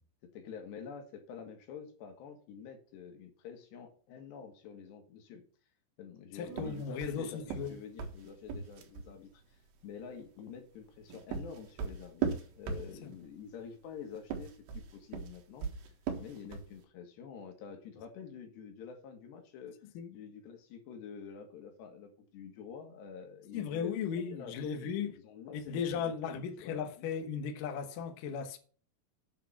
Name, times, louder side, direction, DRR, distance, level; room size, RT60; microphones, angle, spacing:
voice 1, 0.3-5.4 6.0-12.3 12.6-15.7 16.2-19.8 20.1-23.9 24.3-27.1, left 7 dB, 85° left, 3.8 m, -48 dB
voice 2, 6.3-7.8 13.0-13.1 19.9-20.1 23.5-25.2 25.5-28.6, left 6 dB, 65° left, 2.5 m, -36 dB
sound 1, 6.5-9.1 10.8-13.3 14.2-16.8, right 6 dB, 85° right, 3.6 m, -38 dB
8.6 x 6.5 x 5.9 m
omnidirectional pair, 4.8 m